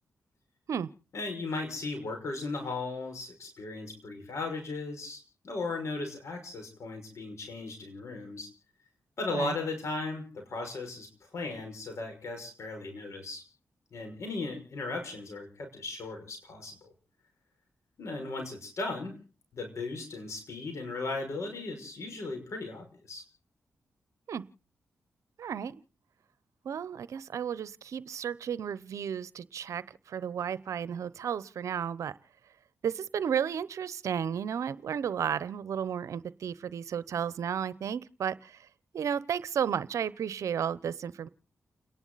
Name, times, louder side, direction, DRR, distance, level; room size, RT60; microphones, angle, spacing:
voice 1, 1.1-8.5 9.2-13.4 13.9-16.9 18.0-19.2 19.5-23.2, left 3 dB, 70° left, 4 dB, 5.9 m, -37 dB
voice 2, 25.4-25.7 26.6-32.1 32.8-38.6 38.9-41.3, right 8 dB, 80° right, 17 dB, 0.8 m, -33 dB
30.0 x 11.0 x 4.0 m, 0.40 s
cardioid pair, 50°, 5 cm